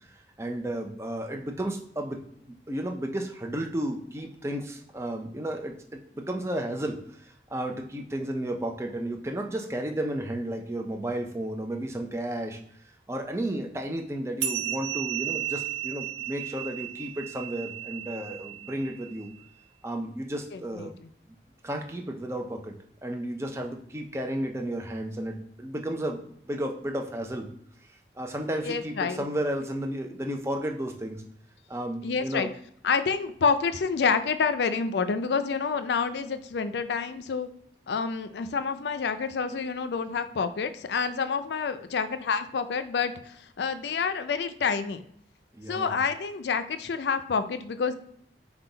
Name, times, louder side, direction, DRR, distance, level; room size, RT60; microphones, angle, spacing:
voice 1, 0.1-12.6 13.1-19.3 19.8-20.9 21.6-22.7 23.0-27.5 28.2-31.2 31.7-32.5 45.5-46.0, right 1 dB, 15° right, 3 dB, 0.5 m, -33 dB
sound 1, 14.4-19.3, right 12 dB, 75° right, 0.5 m, -34 dB
voice 2, 20.5-21.1 28.6-29.2 32.0-32.5 32.8-37.5 37.9-45.0 45.7-47.9, left 5 dB, 80° left, 10 dB, 0.4 m, -28 dB
5.6 x 2.3 x 3.9 m, 0.67 s
head